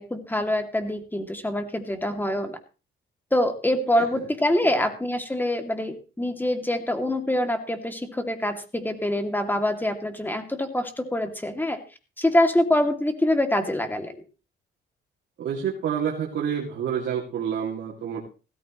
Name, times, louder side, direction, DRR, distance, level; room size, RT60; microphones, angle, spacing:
voice 1, 0.0-2.6 3.3-11.8 12.2-14.1, left 1 dB, 10° left, 6 dB, 2.5 m, -25 dB
voice 2, 15.4-18.2, right 8 dB, 70° right, -2 dB, 2.5 m, -28 dB
16.5 x 14.0 x 3.1 m, 0.33 s
cardioid pair, 90°, 20 cm